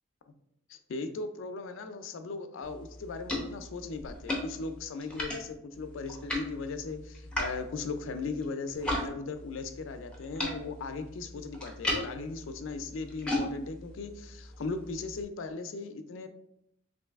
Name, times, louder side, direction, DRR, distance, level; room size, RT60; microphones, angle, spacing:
voice 1, 0.7-16.3, left 4 dB, 70° left, 8 dB, 0.4 m, -38 dB
sound 1, 2.6-9.1 9.3-15.2, left 1 dB, 5° left, 0.6 m, -37 dB
3.1 x 2.6 x 3.4 m, 0.75 s
head